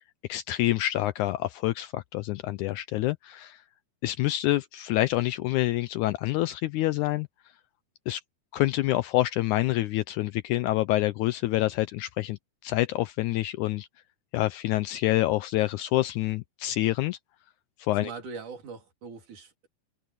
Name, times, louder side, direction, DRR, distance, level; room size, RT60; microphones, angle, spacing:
voice 1, 0.3-3.6 4.0-7.3 8.1-8.2 8.5-12.4 12.6-13.9 14.3-17.2 17.8-18.1, left 16 dB, 80° left, 1.9 m, -27 dB
voice 2, 17.9-19.7, right 5 dB, 70° right, 4.7 m, -41 dB
omnidirectional pair, 3.7 m